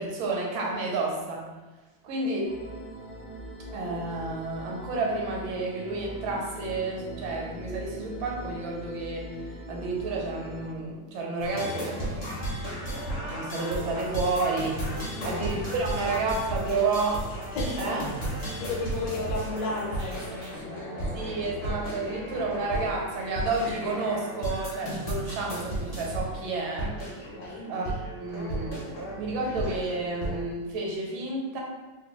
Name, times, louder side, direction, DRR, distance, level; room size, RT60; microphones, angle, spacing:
voice 1, 0.0-1.5 2.0-2.6 3.7-12.2 12.9-14.8 15.2-17.2 17.8-18.0 21.1-27.0 27.7-31.6, right 3 dB, 80° right, -1 dB, 1.4 m, -31 dB
sound 1, 2.4-10.7, right 1 dB, 15° right, 0.4 m, -41 dB
sound 2, 11.4-30.4, right 1 dB, 55° left, 0.7 m, -34 dB
sound 3, 13.8-20.6, left 1 dB, 55° right, 0.7 m, -45 dB
voice 2, 15.1-15.5 16.1-16.2 17.5-18.0 18.5-21.3 27.4-27.7, left 3 dB, 75° left, -2 dB, 1.2 m, -34 dB
3.2 x 2.2 x 2.9 m, 1.2 s
omnidirectional pair, 2.1 m